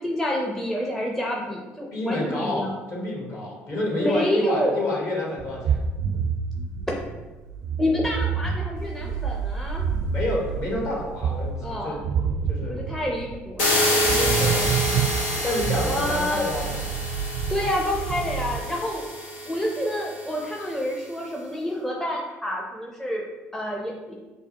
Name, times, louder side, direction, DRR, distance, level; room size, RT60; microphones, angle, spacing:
voice 1, 0.0-2.7 4.0-4.8 7.8-9.8 11.6-12.0 12.7-14.7 15.9-16.4 17.5-19.1 19.4-23.3 23.5-24.1, left 1 dB, 5° left, -2 dB, 0.6 m, -28 dB
voice 2, 1.9-5.8 10.0-12.0 12.5-12.8 14.1-14.3 15.4-16.9, left 2 dB, 45° left, -3 dB, 1.5 m, -29 dB
sound 1, 5.4-18.6, right 6 dB, 65° right, 0.5 m, -28 dB
sound 2, 13.6-20.4, left 1 dB, 80° left, 0.9 m, -27 dB
5.5 x 2.2 x 2.9 m, 1.2 s
hypercardioid pair, 55°, 7 cm